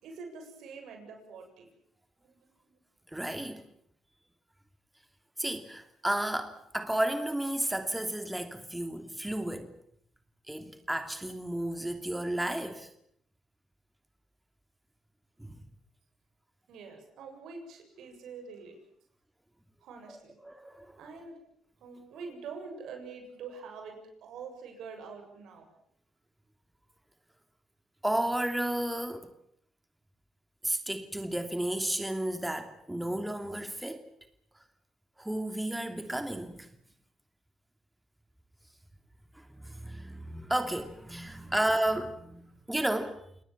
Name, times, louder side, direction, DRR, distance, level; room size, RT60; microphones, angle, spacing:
voice 1, 0.0-1.7 2.2-2.5 16.7-18.8 19.8-20.4 21.0-21.4 21.8-25.7, right 5 dB, 70° right, 7.5 m, -45 dB
voice 2, 3.1-3.6 5.4-9.7 10.5-12.9 15.4-15.6 20.1-20.9 28.0-29.3 30.6-34.0 35.2-36.7 39.3-43.2, right 1 dB, 10° right, 2.9 m, -32 dB
30.0 x 19.5 x 7.5 m
supercardioid pair, 55°, 0 cm